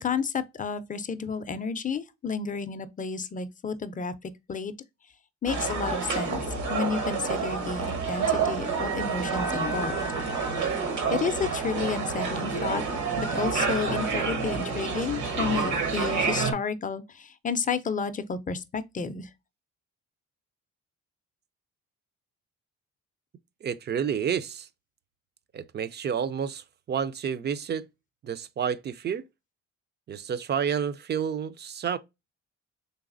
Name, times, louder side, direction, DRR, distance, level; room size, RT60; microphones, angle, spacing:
voice 1, 0.0-4.7 5.4-6.4 6.7-10.0 11.1-12.8 13.2-19.3, left 5 dB, 25° left, 0.4 m, -31 dB
sound 1, 5.5-16.5, right 5 dB, 70° right, 1.1 m, -28 dB
voice 2, 23.6-24.7 25.5-27.9 28.2-29.2 30.1-32.0, right 7 dB, 35° right, 0.4 m, -30 dB
4.0 x 3.2 x 2.5 m
cardioid pair, 90°, 30 cm